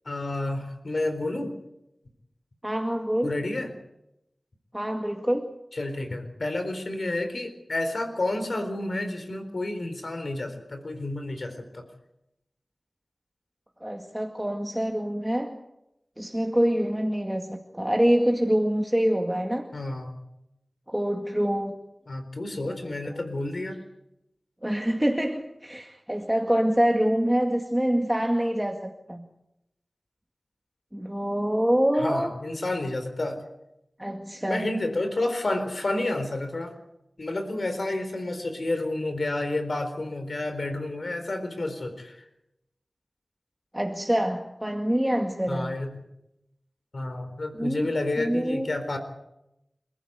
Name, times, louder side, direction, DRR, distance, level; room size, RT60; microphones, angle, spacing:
voice 1, 0.1-1.6 3.2-3.7 5.7-11.8 19.7-20.1 22.1-23.8 32.0-33.4 34.5-36.7 37.2-42.2 45.5-46.0 46.9-49.0, left 2 dB, 70° left, 7 dB, 4.1 m, -30 dB
voice 2, 2.6-3.3 4.7-5.5 13.8-15.6 16.2-19.7 20.9-21.8 22.6-23.2 24.6-29.3 30.9-32.3 34.0-34.7 43.7-45.8 47.5-48.7, equal, 10° right, 3 dB, 2.1 m, -26 dB
27.5 x 15.0 x 8.2 m, 0.87 s
wide cardioid pair, 40°, 0 cm